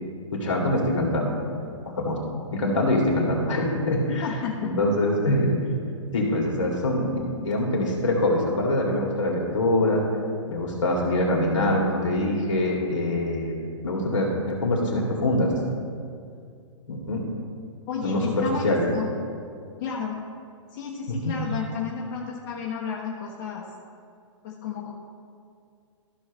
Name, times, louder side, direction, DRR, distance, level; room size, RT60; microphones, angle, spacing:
voice 1, 0.3-1.3 2.0-2.2 2.5-4.2 4.6-5.5 6.1-7.2 7.4-10.0 10.5-13.5 13.8-15.5 16.9-17.2 18.0-18.9 21.1-21.3, left 1 dB, 70° left, -1 dB, 2.5 m, -24 dB
voice 2, 4.1-4.9 17.9-19.1 19.8-20.2 20.7-23.7 24.4-24.9, left 6 dB, 40° left, -3 dB, 1.2 m, -32 dB
14.0 x 6.5 x 3.1 m, 2.2 s
hypercardioid pair, 130°, 17 cm